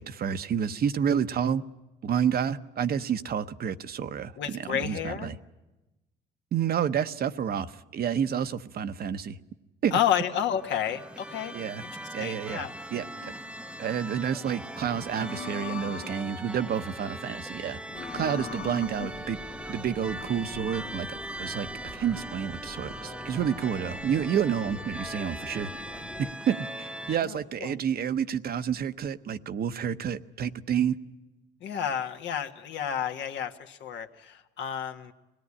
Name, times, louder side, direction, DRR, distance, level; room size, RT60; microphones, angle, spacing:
voice 1, 0.0-1.6 2.0-5.4 6.5-9.4 9.8-10.0 11.5-11.8 12.1-13.3 13.8-17.8 18.1-19.4 19.7-25.7 26.2-31.0, right 8 dB, 55° right, 11 dB, 0.9 m, -29 dB
voice 2, 4.4-5.3 9.9-11.5 11.8-11.9 12.2-12.8 27.2-27.7 31.6-35.1, left 9 dB, 75° left, 5 dB, 1.6 m, -31 dB
sound 1, 10.4-27.2, right 1 dB, 5° right, 0.7 m, -40 dB
sound 2, 13.2-14.0 15.1-16.6 17.8-20.3, left 8 dB, 55° left, 0.8 m, -42 dB
sound 3, 17.9-26.3, left 4 dB, 30° left, 1.3 m, -46 dB
25.0 x 18.5 x 9.8 m, 1.1 s
cardioid pair, 90°, 19 cm